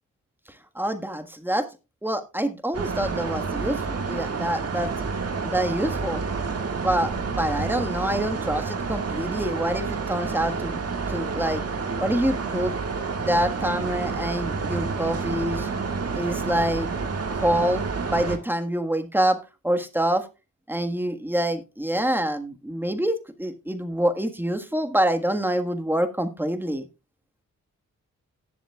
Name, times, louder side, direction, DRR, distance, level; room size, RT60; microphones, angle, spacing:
voice 1, 0.7-1.7 2.0-4.9 5.4-6.2 6.8-10.8 11.1-11.6 12.0-12.8 13.2-15.7 16.1-16.9 17.3-17.8 18.1-19.4 19.6-20.2 20.7-26.9, right 1 dB, 5° right, 7 dB, 1.5 m, -26 dB
sound 1, 2.7-18.4, right 4 dB, 50° right, 1.8 m, -29 dB
18.0 x 7.2 x 2.3 m, 0.28 s
cardioid pair, 80°, 32 cm